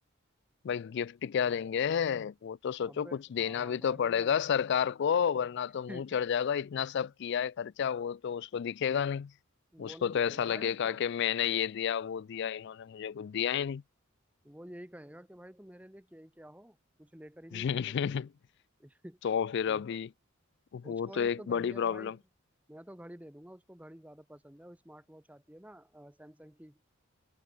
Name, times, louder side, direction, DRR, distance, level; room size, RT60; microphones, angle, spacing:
voice 1, 0.6-9.3 9.8-13.8 17.5-18.3 19.2-20.1 20.7-22.2, left 8 dB, 55° left, 0.3 m, -31 dB
voice 2, 2.8-4.4 5.9-6.2 9.7-11.0 14.4-18.2 18.8-19.2 19.7-19.9 20.8-22.2 22.7-26.8, right 1 dB, 5° right, 1.1 m, -50 dB
head